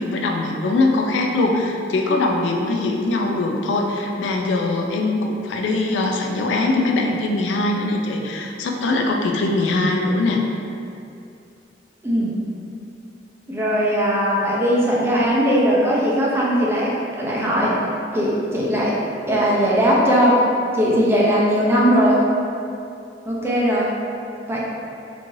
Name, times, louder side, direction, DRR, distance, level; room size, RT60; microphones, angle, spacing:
voice 1, 0.0-10.4, left 2 dB, 90° left, 1 dB, 0.4 m, -21 dB
voice 2, 13.5-17.7 18.1-18.9 19.3-20.3 20.7-22.2 23.3-23.8 24.5-24.6, equal, 15° right, -5 dB, 0.5 m, -19 dB
3.1 x 2.5 x 2.6 m, 2.6 s
head